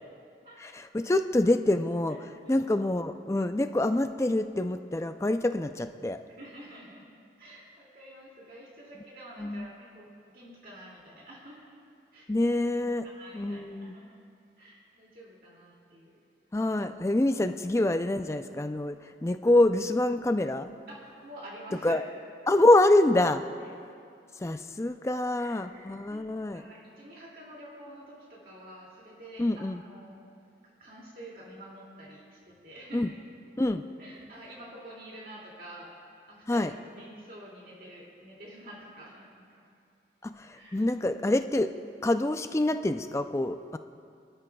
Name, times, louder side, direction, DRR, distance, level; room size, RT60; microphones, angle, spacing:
voice 1, 0.6-6.2 9.4-9.7 12.3-13.0 13.3-14.0 16.5-20.7 21.8-22.0 22.5-23.4 24.4-26.6 29.4-29.8 32.9-33.1 33.6-33.9 36.5-36.7 40.2-41.7 42.0-43.8, left 1 dB, 15° left, 9 dB, 0.3 m, -26 dB
voice 2, 2.1-2.7 6.2-7.0 7.4-11.7 12.1-12.5 13.0-14.2 14.6-16.2 20.9-22.0 25.4-30.2 30.8-33.1 34.0-35.9 36.3-39.6 40.5-40.9, right 1 dB, 50° right, -4 dB, 2.4 m, -48 dB
24.5 x 12.5 x 2.3 m, 2.4 s
head